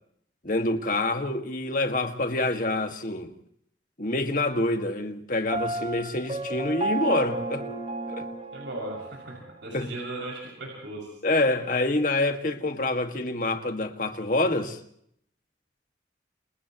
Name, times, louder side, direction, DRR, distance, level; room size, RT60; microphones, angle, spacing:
voice 1, 0.4-3.3 4.0-7.7 8.1-8.2 9.7-9.9 11.2-14.8, left 2 dB, 45° left, 2.1 m, -26 dB
Piano, 5.5-9.4, right 2 dB, 35° right, 1.5 m, -32 dB
voice 2, 8.5-11.1, right 2 dB, 85° right, 6.7 m, -37 dB
29.0 x 28.5 x 3.1 m
head